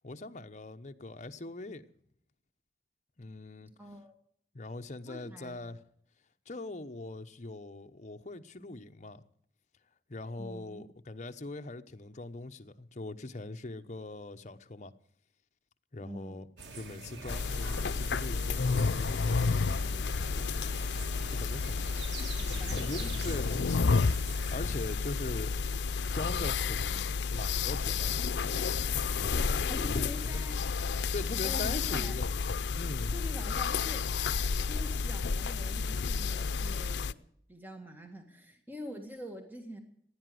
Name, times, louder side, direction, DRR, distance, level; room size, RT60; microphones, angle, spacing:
voice 1, 0.0-1.9 3.2-3.7 4.5-5.8 6.5-9.2 10.1-14.9 15.9-16.5 16.7-20.5 21.3-22.0 22.5-25.5 26.1-28.1 29.2-29.7 30.0-30.5 31.1-32.3 32.8-33.1, left 2 dB, 40° left, 0.9 m, -42 dB
voice 2, 3.6-4.2 5.1-5.6 10.4-10.8 16.0-16.5 22.2-23.0 29.7-30.6 31.4-32.2 33.1-34.1 34.5-37.2 37.5-39.8, equal, 10° right, 1.8 m, -45 dB
sound 1, 16.6-24.5, right 4 dB, 85° right, 1.6 m, -46 dB
sound 2, 17.3-37.1, left 4 dB, 75° left, 0.5 m, -31 dB
16.0 x 10.0 x 7.7 m
head